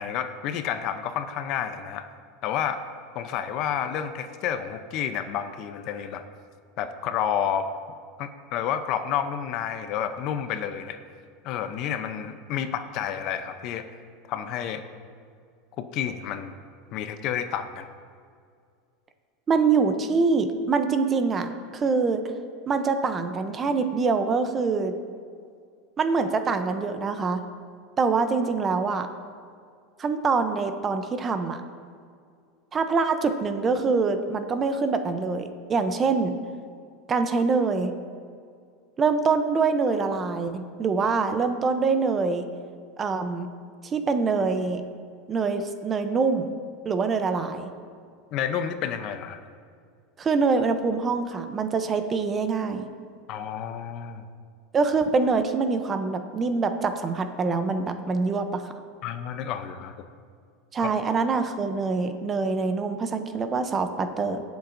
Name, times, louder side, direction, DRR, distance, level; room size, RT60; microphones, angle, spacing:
voice 1, 0.0-2.1 2.4-2.8 3.1-6.2 6.8-7.7 8.2-11.0 11.4-13.9 14.3-14.8 15.8-16.5 16.9-17.9 48.3-49.4 53.3-54.2 59.0-60.1 60.8-60.9, left 9 dB, 45° left, 9 dB, 0.6 m, -30 dB
voice 2, 19.5-22.2 22.7-24.9 26.0-27.4 28.0-29.1 30.0-31.6 32.7-36.3 37.1-37.9 39.0-42.4 43.0-43.5 43.8-44.8 45.3-46.5 46.8-47.7 50.2-52.9 54.7-58.6 60.7-64.4, right 4 dB, 20° right, 8 dB, 0.6 m, -25 dB
19.5 x 7.0 x 2.6 m, 2.2 s
supercardioid pair, 145°, 0 cm